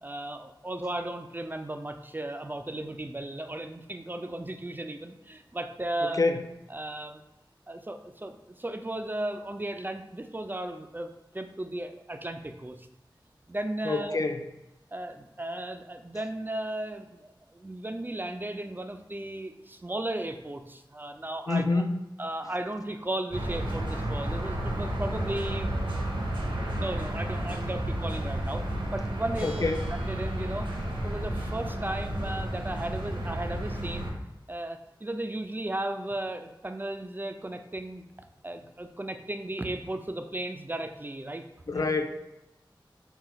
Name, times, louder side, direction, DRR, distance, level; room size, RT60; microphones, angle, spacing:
voice 1, 0.0-6.2 6.7-7.2 7.7-12.9 13.5-14.2 14.9-21.8 22.2-25.7 26.5-28.6 28.9-29.6 29.9-30.7 31.0-34.1 34.5-38.1 38.4-41.4 41.7-41.9, right 1 dB, 25° right, 6 dB, 0.4 m, -35 dB
voice 2, 13.8-14.4 21.5-22.0 29.4-29.8 41.7-42.1, left 3 dB, 45° left, 7 dB, 0.4 m, -26 dB
sound 1, 23.3-34.1, right 1 dB, 80° right, 0.8 m, -32 dB
Bell, 29.4-31.0, equal, 80° left, 1.1 m, -52 dB
3.8 x 2.3 x 4.2 m, 0.91 s
wide cardioid pair, 45°, 9 cm